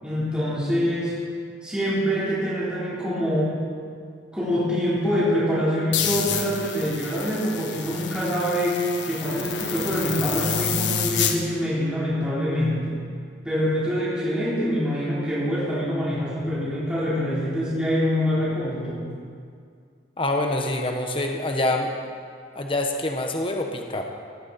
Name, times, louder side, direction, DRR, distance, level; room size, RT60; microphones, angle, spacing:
voice 1, 0.0-1.1 1.6-3.6 4.3-8.8 9.0-13.0 13.4-19.0, equal, 5° right, -10 dB, 3.7 m, -25 dB
sound 1, 5.9-11.4, left 6 dB, 65° left, 1.6 m, -28 dB
voice 2, 20.2-21.9 22.5-24.1, left 2 dB, 30° left, 3 dB, 1.2 m, -25 dB
18.5 x 17.5 x 4.3 m, 2.2 s
head